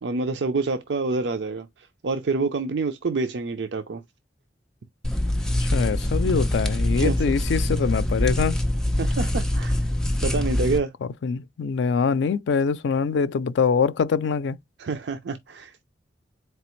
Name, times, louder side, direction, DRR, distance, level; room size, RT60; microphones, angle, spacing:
voice 1, 0.0-4.0 7.0-7.2 9.0-9.7 10.2-10.9 14.8-15.8, right 3 dB, 90° right, 0.5 m, -27 dB
sound 1, 5.0-10.8, left 1 dB, 5° left, 0.6 m, -24 dB
voice 2, 5.6-8.6 11.2-14.6, left 5 dB, 90° left, 0.4 m, -24 dB
4.1 x 3.2 x 3.0 m
head